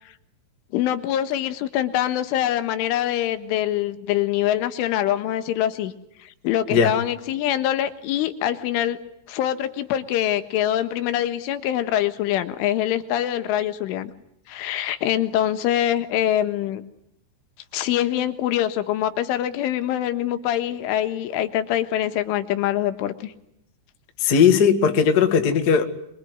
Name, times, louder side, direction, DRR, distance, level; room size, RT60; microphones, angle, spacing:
voice 1, 0.7-5.9 6.2-9.0 9.3-14.1 14.5-16.8 17.7-23.3, left 12 dB, 85° left, 10 dB, 3.9 m, -24 dB
voice 2, 24.2-25.8, left 6 dB, 50° left, 6 dB, 1.1 m, -17 dB
25.0 x 24.0 x 9.4 m, 0.76 s
omnidirectional pair, 5.6 m